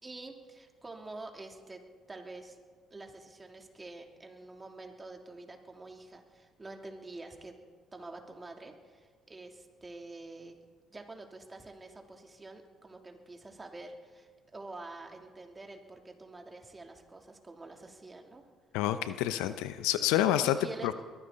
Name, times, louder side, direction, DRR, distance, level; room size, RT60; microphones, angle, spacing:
voice 1, 0.0-1.8 2.1-2.6 2.9-7.6 7.9-10.6 10.9-18.4 20.4-20.9, right 2 dB, 25° right, 3 dB, 3.0 m, -47 dB
voice 2, 18.7-20.6 20.8-20.9, left 13 dB, 75° left, 12 dB, 0.7 m, -28 dB
22.5 x 15.5 x 4.1 m, 1.5 s
hypercardioid pair, 55°, 0 cm